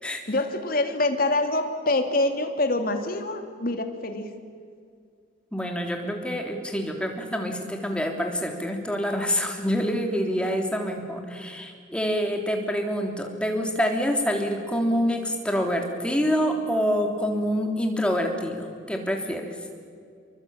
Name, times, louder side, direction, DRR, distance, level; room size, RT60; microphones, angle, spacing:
voice 1, 0.3-4.3, left 2 dB, 45° left, 5 dB, 3.0 m, -25 dB
voice 2, 5.5-19.5, equal, 5° left, 3 dB, 3.4 m, -26 dB
28.0 x 23.5 x 8.9 m, 2.2 s
head